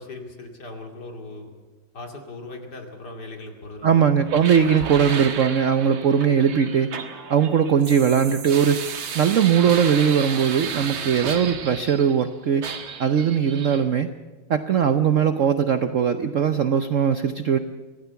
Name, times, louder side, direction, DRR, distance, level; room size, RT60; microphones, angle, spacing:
voice 1, 0.0-1.5 1.9-4.4, left 2 dB, 55° left, 2 dB, 3.1 m, -39 dB
voice 2, 3.8-6.9 7.3-8.8 9.1-12.6 13.0-14.1 14.5-17.6, right 7 dB, 60° right, 9 dB, 0.8 m, -20 dB
sound 1, 4.3-12.3 12.6-13.8, right 6 dB, 80° right, 2.3 m, -33 dB
25.0 x 17.0 x 7.0 m, 1.3 s
omnidirectional pair, 2.1 m